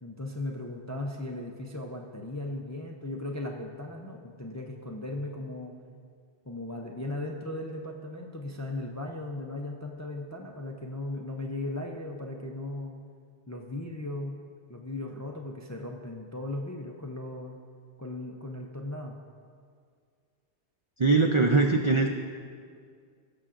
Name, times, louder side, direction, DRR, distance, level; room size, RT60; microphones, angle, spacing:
voice 1, 0.0-5.7 6.5-13.0 13.5-14.4 14.7-17.6 18.0-19.2, left 2 dB, 25° left, 1 dB, 0.4 m, -37 dB
voice 2, 21.0-22.1, right 3 dB, 50° right, 1 dB, 0.3 m, -22 dB
17.5 x 6.7 x 2.5 m, 2.1 s
omnidirectional pair, 1.2 m